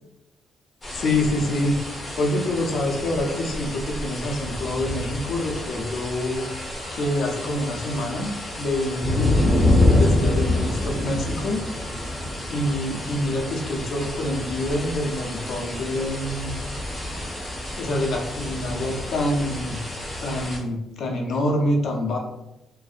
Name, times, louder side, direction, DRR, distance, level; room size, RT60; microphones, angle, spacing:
sound 1, 0.8-20.6, left 1 dB, 20° left, 0.7 m, -27 dB
voice 1, 0.9-1.8 2.2-6.5 6.9-8.3 8.6-9.5 9.9-11.6 12.0-12.1 12.5-16.5 17.8-19.9 20.2-22.2, left 1 dB, 65° left, 1 dB, 0.5 m, -26 dB
Wind instrument woodwind instrument, 6.3-12.9, left 1 dB, 55° right, 0.7 m, -50 dB
2.5 x 2.0 x 2.4 m, 0.92 s
cardioid pair, 90°, 0 cm